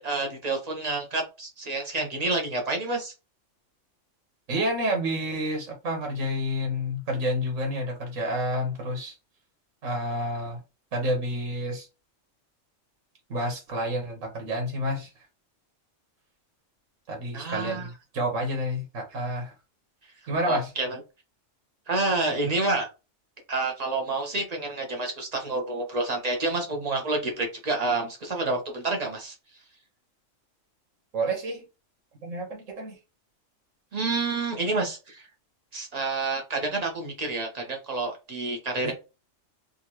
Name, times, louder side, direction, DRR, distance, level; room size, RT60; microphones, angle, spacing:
voice 1, 0.0-3.1 17.3-17.9 20.5-21.0 21.9-22.9 23.5-29.3 33.9-35.3 35.7-38.9, right 3 dB, 35° right, 1.0 m, -28 dB
voice 2, 4.5-9.1 9.8-10.6 10.9-11.9 13.3-15.1 17.1-19.5 20.3-20.7 31.1-31.6 32.2-33.0 38.8-38.9, equal, 90° right, 1.5 m, -29 dB
3.8 x 2.6 x 3.0 m
omnidirectional pair, 1.3 m